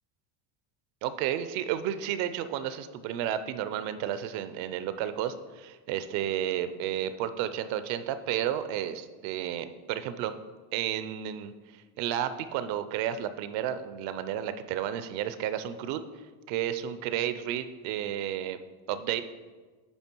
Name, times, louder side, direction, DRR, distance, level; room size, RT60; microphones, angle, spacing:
voice 1, 1.0-10.3 10.7-16.0 16.5-18.6 18.9-19.2, right 10 dB, 65° right, 12 dB, 0.6 m, -32 dB
10.0 x 3.3 x 4.5 m, 1.4 s
supercardioid pair, 125°, 50 cm